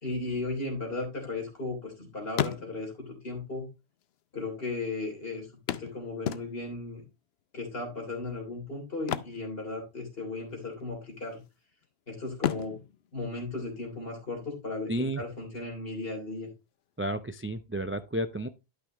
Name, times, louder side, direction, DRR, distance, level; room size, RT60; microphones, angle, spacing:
voice 1, 0.0-3.7 4.3-7.0 7.5-11.4 12.1-12.8 13.1-16.5, left 3 dB, 65° left, 2 dB, 3.5 m, -36 dB
sound 1, 0.7-1.9 2.2-3.1 4.0-4.1 4.3-4.4 5.7-6.9 8.9-10.2 10.5-10.8 11.3-11.9 12.3-14.1 16.1-16.2 16.6-16.7, left 10 dB, 85° left, 0.9 m, -35 dB
voice 2, 14.9-15.2 17.0-18.5, right 1 dB, 20° right, 11 dB, 0.3 m, -32 dB
12.0 x 5.6 x 3.0 m, 0.25 s
omnidirectional pair, 1.0 m